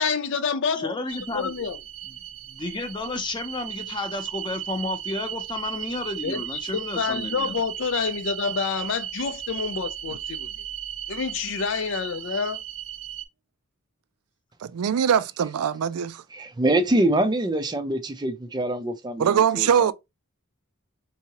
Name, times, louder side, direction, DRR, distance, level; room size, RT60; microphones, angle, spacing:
voice 1, 0.0-0.9 1.3-1.8 6.2-6.4 6.7-10.5 11.1-12.6, left 5 dB, 55° left, 0.4 m, -28 dB
voice 2, 0.7-1.5 2.5-7.5, left 2 dB, 20° left, 0.7 m, -32 dB
sound 1, 1.1-13.2, right 11 dB, 65° right, 0.8 m, -36 dB
voice 3, 14.6-16.2 19.2-19.9, right 8 dB, 85° right, 0.4 m, -22 dB
voice 4, 16.3-19.9, right 1 dB, 20° right, 0.4 m, -25 dB
4.6 x 2.8 x 2.8 m
head